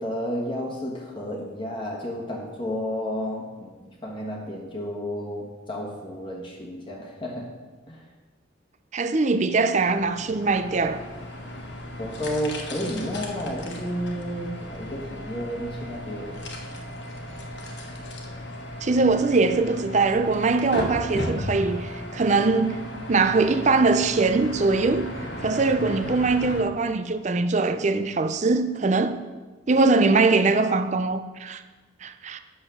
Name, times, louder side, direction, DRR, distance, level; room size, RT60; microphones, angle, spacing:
voice 1, 0.0-7.5 7.9-8.1 12.0-16.4, equal, 25° left, 1.3 m, -32 dB
voice 2, 8.9-11.0 18.8-22.8 23.1-25.1 25.4-29.2 29.7-31.6 32.0-32.4, right 3 dB, 35° right, 0.5 m, -22 dB
sound 1, 9.7-26.6, left 1 dB, 60° left, 1.3 m, -36 dB
9.1 x 6.3 x 6.1 m
head